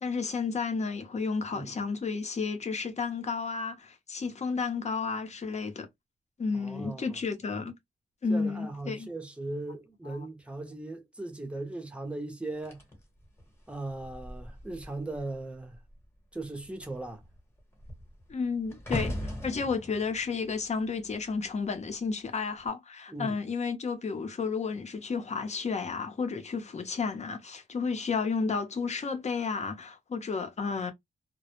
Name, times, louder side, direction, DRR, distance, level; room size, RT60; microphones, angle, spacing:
voice 1, 0.0-5.9 6.4-7.7 8.2-9.1 10.0-10.2 18.3-30.9, left 5 dB, 40° left, 0.7 m, -32 dB
voice 2, 6.5-7.2 8.3-12.8 13.7-15.8 16.3-17.2 18.9-19.0 23.1-23.4, right 2 dB, 5° right, 0.7 m, -38 dB
sound 1, 12.6-15.4 15.7-16.0 16.3-21.7 22.4-22.7, left 1 dB, 15° left, 1.0 m, -40 dB
2.1 x 2.0 x 2.9 m
cardioid pair, 100°, 17 cm